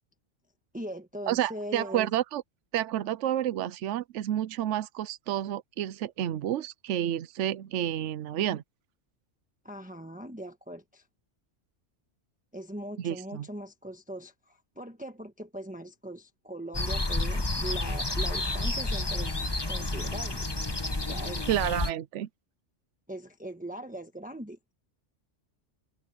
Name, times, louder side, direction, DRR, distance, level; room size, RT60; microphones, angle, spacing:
voice 1, 0.7-2.1 9.6-11.1 12.5-20.5 21.1-21.5 23.1-24.6, right 1 dB, 5° right, 1.3 m, -40 dB
voice 2, 1.3-2.4 2.7-8.6 13.0-13.5 21.5-22.3, right 11 dB, 80° right, 1.0 m, -30 dB
sound 1, 16.7-21.9, left 2 dB, 20° left, 1.4 m, -30 dB
omnidirectional pair, 1.2 m